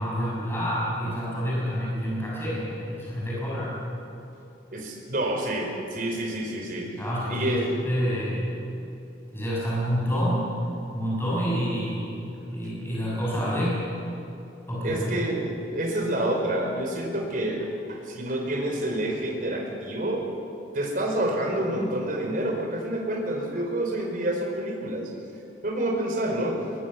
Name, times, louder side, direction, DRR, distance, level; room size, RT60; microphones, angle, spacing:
voice 1, 0.0-3.7 7.0-8.5 9.3-10.5 10.9-13.8 14.7-15.2, equal, 15° left, -7 dB, 7.4 m, -28 dB
voice 2, 4.7-7.0 7.3-7.8 14.8-20.3 20.7-25.1 25.6-26.6, right 1 dB, 50° right, 1 dB, 4.6 m, -28 dB
23.0 x 22.5 x 7.1 m, 2.8 s
head